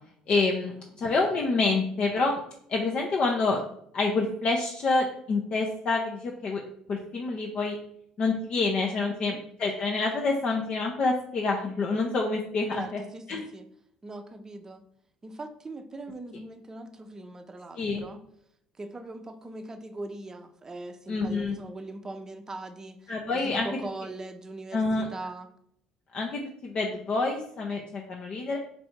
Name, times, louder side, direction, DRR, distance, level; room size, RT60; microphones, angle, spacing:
voice 1, 0.3-0.7 1.0-2.4 2.7-3.6 3.9-6.6 6.9-7.8 8.2-13.0 13.3-13.4 17.8-18.0 21.1-21.5 23.1-23.7 24.7-25.1 26.1-28.6, left 3 dB, 50° left, 0 dB, 0.6 m, -27 dB
voice 2, 9.0-9.4 12.7-13.6 14.0-14.8 15.2-18.2 18.8-25.5, right 2 dB, 25° right, 7 dB, 0.6 m, -41 dB
3.3 x 2.6 x 4.3 m, 0.71 s
hypercardioid pair, 70°, 2 cm